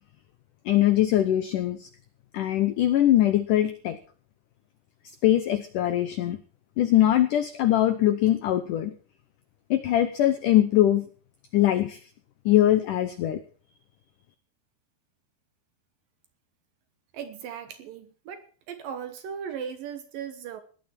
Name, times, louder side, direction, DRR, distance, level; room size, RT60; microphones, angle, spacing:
voice 1, 0.6-1.9 2.3-4.0 5.2-6.4 6.8-8.9 9.7-11.0 11.5-12.0 12.5-13.4, left 13 dB, 85° left, 10 dB, 1.8 m, -22 dB
voice 2, 17.1-20.6, right 7 dB, 70° right, 10 dB, 2.4 m, -37 dB
17.5 x 12.0 x 4.4 m, 0.41 s
omnidirectional pair, 5.0 m